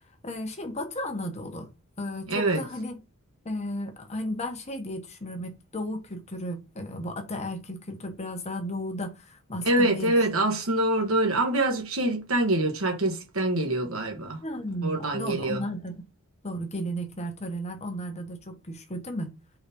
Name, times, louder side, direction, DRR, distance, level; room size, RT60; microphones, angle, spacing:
voice 1, 0.2-1.7 2.0-3.0 3.4-10.1 14.4-16.0 16.4-19.3, equal, 30° left, 1.2 m, -34 dB
voice 2, 2.3-2.6 9.6-14.4 14.8-15.6, right 1 dB, 65° right, 1.4 m, -25 dB
4.9 x 4.0 x 5.2 m
head